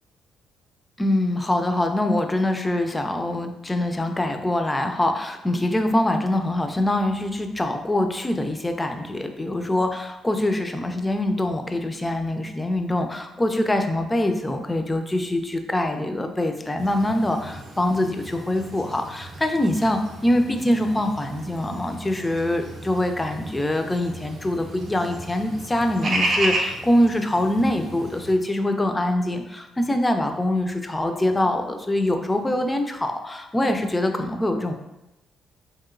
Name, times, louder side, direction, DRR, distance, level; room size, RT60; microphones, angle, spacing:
voice 1, 1.0-34.7, left 1 dB, 15° left, 5 dB, 0.3 m, -24 dB
sound 1, 16.8-28.3, right 2 dB, 50° right, 0.6 m, -33 dB
3.0 x 2.8 x 2.4 m, 0.93 s
cardioid pair, 90°, 0 cm